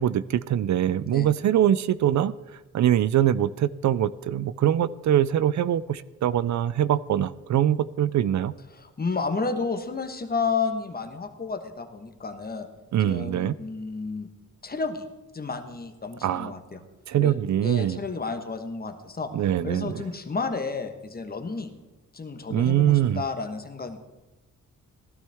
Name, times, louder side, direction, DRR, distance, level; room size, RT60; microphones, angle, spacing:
voice 1, 0.0-8.5 12.9-13.5 16.2-16.5 17.1-18.0 19.3-20.0 22.5-23.2, right 11 dB, 65° right, 17 dB, 0.4 m, -23 dB
voice 2, 8.7-12.7 13.0-14.3 14.6-15.1 15.3-16.8 17.2-17.3 17.6-19.3 19.6-21.7 22.1-24.0, left 4 dB, 30° left, 7 dB, 1.2 m, -31 dB
16.0 x 12.0 x 3.5 m, 1.1 s
cardioid pair, 100°, 31 cm